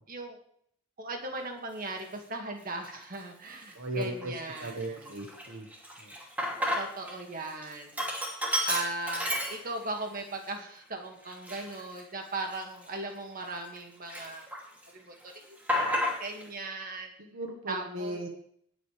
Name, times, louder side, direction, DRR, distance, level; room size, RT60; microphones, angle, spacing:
voice 1, 0.1-0.4 1.0-5.1 6.8-8.0 8.7-14.5 14.9-17.1 17.7-18.2, right 2 dB, 45° right, 3 dB, 2.0 m, -38 dB
Sink (filling or washing), 1.9-2.0 2.7-3.2 3.6-3.7 4.0-7.1 7.4-10.0 10.4-10.5 11.2-13.8 14.1-14.9 15.1-16.5, left 1 dB, 10° right, 2.6 m, -33 dB
voice 2, 3.7-5.7 6.0-6.1 17.2-18.3, right 1 dB, 65° right, 2 dB, 1.4 m, -37 dB
19.0 x 8.1 x 3.3 m, 0.64 s
head